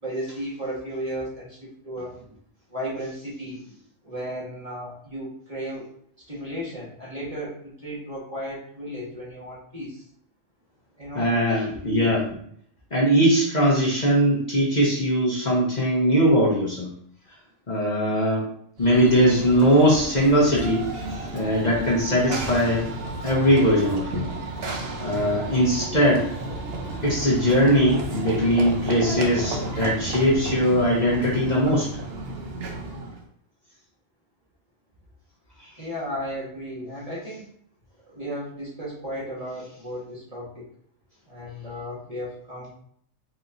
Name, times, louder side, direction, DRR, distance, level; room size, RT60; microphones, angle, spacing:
voice 1, 0.0-2.2 2.7-3.6 4.0-5.9 6.3-10.0 11.0-11.3 11.6-12.4 35.8-37.5 38.1-40.7 41.3-42.7, equal, 30° right, -6 dB, 1.5 m, -34 dB
voice 2, 11.1-12.2 12.9-16.9 17.7-18.5 18.8-22.8 23.2-24.3 25.0-26.3 27.0-31.9 35.6-35.7, equal, 35° left, -5 dB, 1.1 m, -20 dB
Run / Train, 18.8-33.2, right 2 dB, 55° right, 0.9 m, -32 dB
4.5 x 4.1 x 2.6 m, 0.65 s
omnidirectional pair, 1.3 m